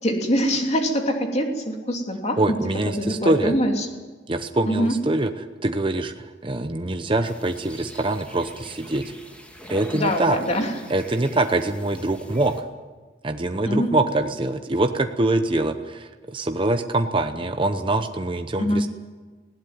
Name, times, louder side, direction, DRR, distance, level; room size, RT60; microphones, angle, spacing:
voice 1, 0.0-2.6 2.9-3.9 4.6-4.9 9.9-10.8 13.7-14.0 18.6-18.9, equal, 35° left, 3 dB, 2.9 m, -24 dB
voice 2, 2.4-3.5 4.3-5.3 5.6-9.1 9.7-10.4 10.9-12.6 13.2-18.9, right 2 dB, 30° right, 7 dB, 0.8 m, -24 dB
sound 1, 7.2-12.6, equal, 5° left, 2.4 m, -44 dB
19.5 x 17.0 x 9.4 m, 1.3 s
head